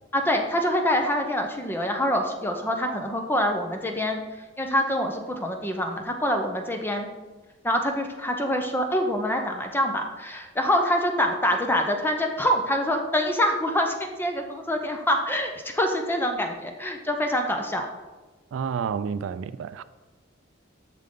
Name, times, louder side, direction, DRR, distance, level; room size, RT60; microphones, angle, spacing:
voice 1, 0.1-4.2 4.6-7.1 7.6-17.8, equal, 10° left, 0.7 m, -25 dB
voice 2, 18.5-19.8, right 6 dB, 80° right, 0.3 m, -30 dB
7.2 x 6.6 x 3.8 m
head